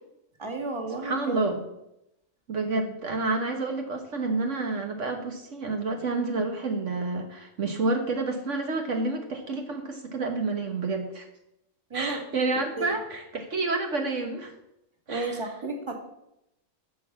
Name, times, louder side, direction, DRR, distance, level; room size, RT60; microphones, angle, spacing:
voice 1, 0.4-1.4 11.9-12.2 12.8-12.9 15.1-16.0, right 3 dB, 20° right, 2 dB, 1.9 m, -32 dB
voice 2, 1.0-1.6 2.5-11.3 11.9-14.5 15.1-15.5, right 3 dB, 65° right, 4 dB, 1.5 m, -29 dB
10.0 x 6.7 x 7.2 m, 0.83 s
omnidirectional pair, 1.4 m